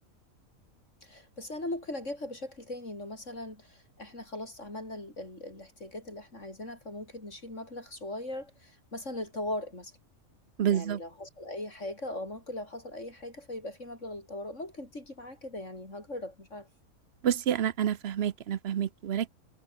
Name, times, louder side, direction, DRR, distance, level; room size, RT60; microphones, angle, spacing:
voice 1, 1.0-9.9 10.7-16.7, left 1 dB, 55° left, 6.6 m, -39 dB
voice 2, 10.6-11.0 17.2-19.3, right 9 dB, 55° right, 0.9 m, -28 dB
omnidirectional pair, 1.5 m